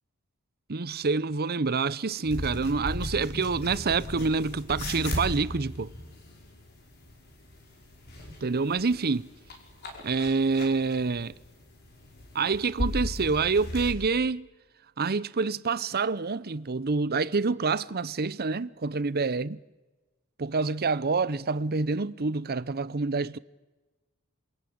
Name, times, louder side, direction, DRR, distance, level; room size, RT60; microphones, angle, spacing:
voice 1, 0.7-5.9 8.4-9.3 10.0-11.3 12.3-14.5 15.0-19.6 20.4-23.4, right 4 dB, 50° right, 0.8 m, -27 dB
sound 1, 2.3-13.9, left 1 dB, 50° left, 5.1 m, -37 dB
27.5 x 23.0 x 8.7 m
head